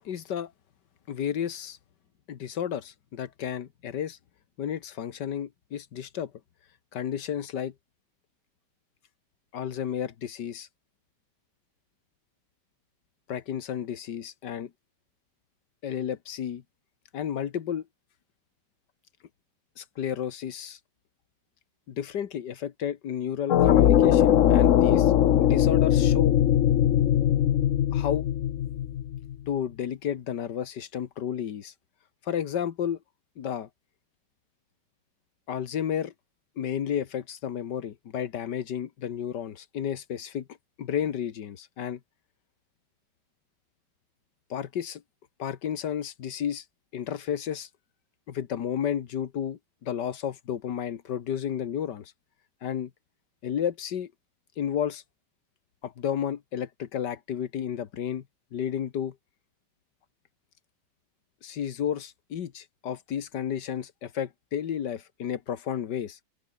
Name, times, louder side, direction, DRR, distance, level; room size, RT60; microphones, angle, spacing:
voice 1, 0.1-0.5 1.1-1.8 2.3-4.2 4.6-6.3 6.9-7.7 9.5-10.7 13.3-14.7 15.8-16.6 17.1-17.9 19.8-20.8 21.9-25.1 25.4-26.4 27.9-28.2 29.5-31.7 32.2-33.0 33.4-33.7 35.5-36.1 36.6-40.5 40.8-42.0 44.5-45.0 45.4-46.6 46.9-47.7 48.3-52.1 52.6-52.9 53.4-54.1 54.6-55.0 55.8-58.2 58.5-59.2 61.4-66.2, left 9 dB, 80° left, 1.9 m, -32 dB
sound 1, 23.5-29.3, left 11 dB, 60° left, 1.0 m, -21 dB
open air
omnidirectional pair, 1.8 m